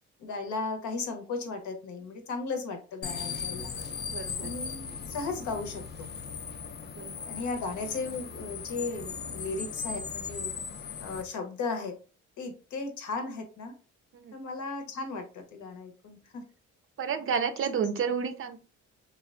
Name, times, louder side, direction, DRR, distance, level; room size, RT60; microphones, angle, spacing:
voice 1, 0.2-3.7 4.4-6.1 7.3-10.5 11.0-11.9 12.4-13.7 14.3-16.4, left 3 dB, 75° left, 5 dB, 0.8 m, -36 dB
sound 1, 3.0-11.2, left 6 dB, 35° left, 0.4 m, -38 dB
voice 2, 4.1-4.5 7.0-7.1 14.1-14.4 17.0-18.6, right 6 dB, 45° right, 10 dB, 0.4 m, -30 dB
3.2 x 2.2 x 2.4 m, 0.36 s
cardioid pair, 90°, 30 cm